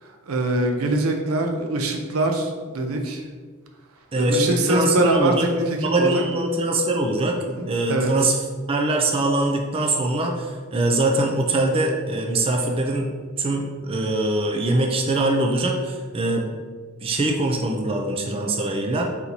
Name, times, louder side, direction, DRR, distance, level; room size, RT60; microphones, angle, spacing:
voice 1, 0.0-3.2 4.1-6.2 7.4-8.1, right 2 dB, 90° right, 3 dB, 0.6 m, -23 dB
voice 2, 4.1-5.5 5.8-7.4 7.6-8.4 8.7-13.1 13.4-16.5 17.0-19.1, right 2 dB, 25° right, 1 dB, 0.4 m, -23 dB
4.1 x 2.9 x 3.9 m, 1.5 s
head